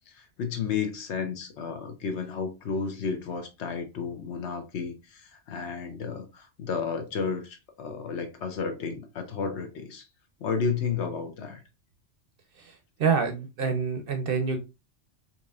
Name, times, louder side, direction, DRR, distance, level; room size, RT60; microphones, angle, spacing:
voice 1, 0.1-10.0 10.4-11.6, left 5 dB, 70° left, 1.0 m, -32 dB
voice 2, 12.6-14.6, right 5 dB, 60° right, 0.7 m, -27 dB
4.2 x 3.0 x 2.4 m
omnidirectional pair, 1.2 m